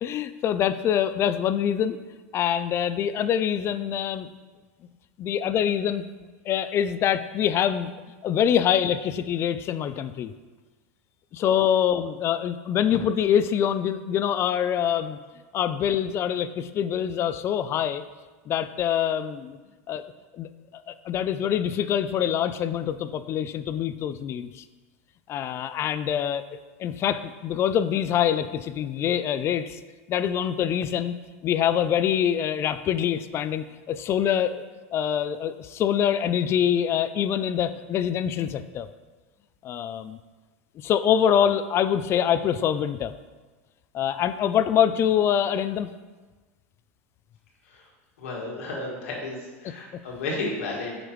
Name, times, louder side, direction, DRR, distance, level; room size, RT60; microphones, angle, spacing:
voice 1, 0.0-2.0 2.3-4.3 5.2-6.0 6.5-7.9 8.2-10.3 11.3-15.2 15.5-18.0 18.5-19.6 19.9-20.0 20.3-24.6 25.3-26.4 26.8-29.8 30.1-31.1 31.4-34.6 34.9-38.9 39.6-40.2 40.8-43.1 43.9-45.9, left 9 dB, 35° left, 12 dB, 0.3 m, -25 dB
voice 2, 48.2-51.0, left 2 dB, 80° left, -2 dB, 1.9 m, -33 dB
7.9 x 4.9 x 3.1 m, 1.3 s
supercardioid pair, 115°, 7 cm